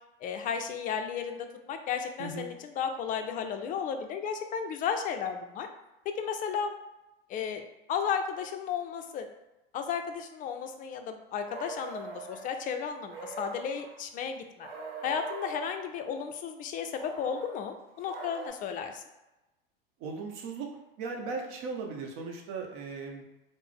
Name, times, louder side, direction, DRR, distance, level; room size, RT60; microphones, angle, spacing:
voice 1, 0.2-5.7 6.2-6.7 7.3-7.6 7.9-9.3 9.7-14.7 15.0-19.0, left 7 dB, 30° left, 6 dB, 0.4 m, -34 dB
voice 2, 2.2-2.5 20.0-20.7 21.0-23.2, right 4 dB, 50° right, 2 dB, 0.8 m, -37 dB
sound 1, 11.5-12.5 13.1-14.0 14.6-15.9 17.0-18.5, right 3 dB, 80° right, 0.9 m, -42 dB
3.3 x 2.0 x 3.6 m, 0.98 s
hypercardioid pair, 90°, 29 cm